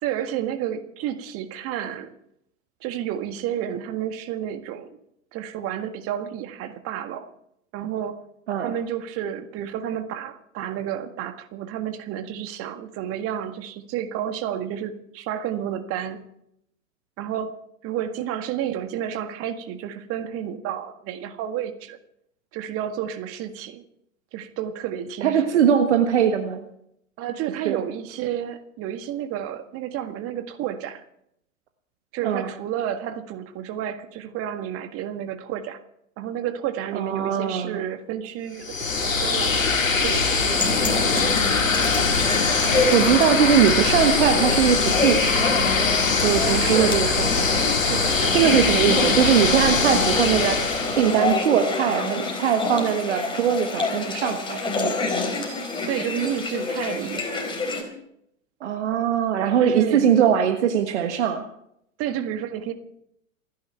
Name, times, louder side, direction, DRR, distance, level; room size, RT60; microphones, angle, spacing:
voice 1, 0.0-2.1 2.8-4.9 5.3-7.3 7.7-8.2 8.6-16.2 17.2-17.5 17.8-22.0 22.5-23.8 24.3-25.4 27.2-31.0 32.1-35.8 36.2-40.6 41.1-41.4 46.4-47.0 47.8-48.4 55.9-57.4 59.6-60.4 62.0-62.7, right 10 dB, 35° right, 9 dB, 1.7 m, -31 dB
voice 2, 25.2-26.6 27.5-27.8 32.2-32.5 36.9-37.8 42.6-45.6 46.2-47.5 48.2-55.0 58.6-61.4, right 8 dB, 60° right, 7 dB, 1.5 m, -21 dB
sound 1, 38.6-51.4, left 4 dB, 80° left, 1.9 m, -22 dB
sound 2, 40.6-57.8, left 3 dB, 10° left, 4.1 m, -27 dB
27.5 x 10.5 x 4.5 m, 0.75 s
figure-of-eight pair, 95°, 39 cm